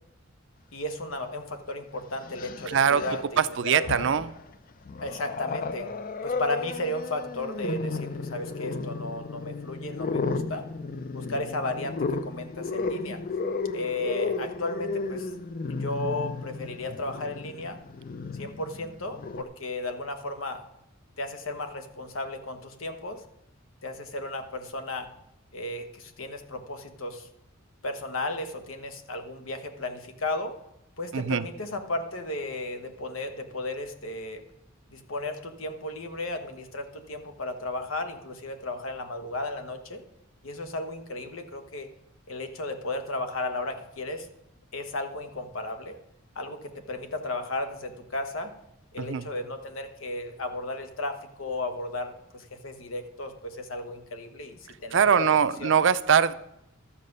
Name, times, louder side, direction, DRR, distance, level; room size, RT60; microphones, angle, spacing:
voice 1, 0.7-4.0 5.0-5.9 6.2-10.7 11.1-13.2 13.7-15.3 15.7-17.8 18.3-20.6 21.2-23.2 23.8-25.1 25.5-27.3 27.8-30.6 31.0-34.4 34.9-40.0 40.4-41.9 42.3-44.3 44.7-46.0 46.3-48.5 48.9-55.8, left 2 dB, 90° left, 6 dB, 1.3 m, -34 dB
Growling, 1.2-1.3 2.2-3.3 3.7-4.4 4.8-19.4, left 4 dB, 45° left, 0.5 m, -33 dB
voice 2, 2.7-3.0 3.4-4.3 31.1-31.4 49.0-49.2 54.9-56.4, right 7 dB, 65° right, 14 dB, 0.5 m, -22 dB
12.5 x 7.4 x 5.4 m, 0.84 s
head